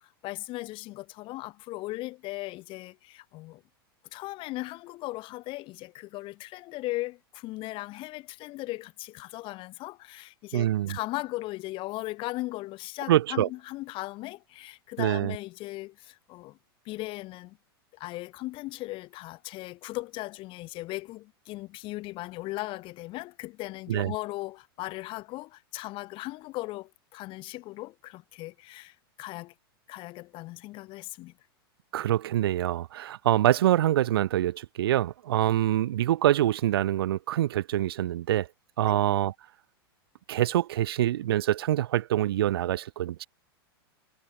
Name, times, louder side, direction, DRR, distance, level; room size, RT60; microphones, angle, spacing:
voice 1, 0.0-3.6 4.1-16.6 16.9-17.6 17.9-29.5 29.9-31.3 38.9-39.0, left 19 dB, 40° left, 1.8 m, -38 dB
voice 2, 10.5-11.0 13.1-13.5 15.0-15.4 23.9-24.1 31.9-38.5 38.8-39.3 40.3-43.3, right 13 dB, 75° right, 0.6 m, -25 dB
hypercardioid pair, 110°, 13 cm